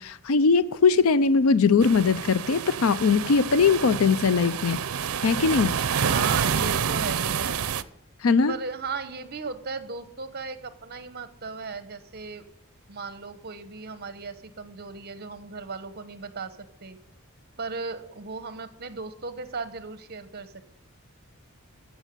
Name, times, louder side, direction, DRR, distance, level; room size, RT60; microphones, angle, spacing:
voice 1, 0.0-4.8 5.2-5.7 8.2-8.6, left 5 dB, 70° left, 0.5 m, -21 dB
sound 1, 1.8-7.8, right 7 dB, 75° right, 0.6 m, -28 dB
voice 2, 5.9-7.6 8.4-12.5 12.9-17.0 17.6-20.6, right 4 dB, 50° right, 1.0 m, -36 dB
14.5 x 6.2 x 6.7 m
head